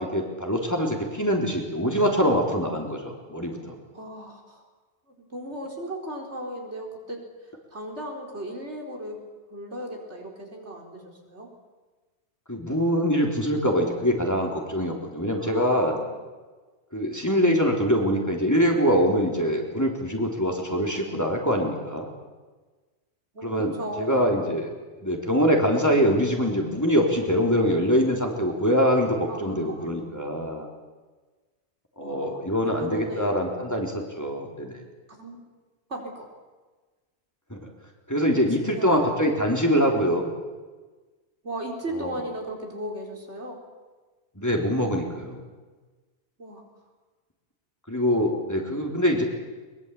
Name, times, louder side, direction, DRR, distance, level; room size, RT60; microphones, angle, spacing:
voice 1, 0.0-3.7 12.5-15.9 16.9-22.1 23.4-23.7 24.0-24.7 25.0-30.7 32.0-34.8 37.5-37.7 38.1-40.3 42.0-42.2 44.4-45.4 47.9-49.2, equal, 15° left, 0 dB, 3.7 m, -24 dB
voice 2, 3.6-4.6 5.1-7.2 7.7-9.2 9.5-11.5 15.4-16.2 23.3-24.3 29.3-30.1 32.0-32.4 32.8-33.6 35.1-35.4 35.9-36.3 38.6-40.0 41.4-43.6 46.4-46.6, right 1 dB, 85° right, 0 dB, 4.7 m, -37 dB
22.5 x 22.5 x 8.4 m, 1.3 s
omnidirectional pair, 1.1 m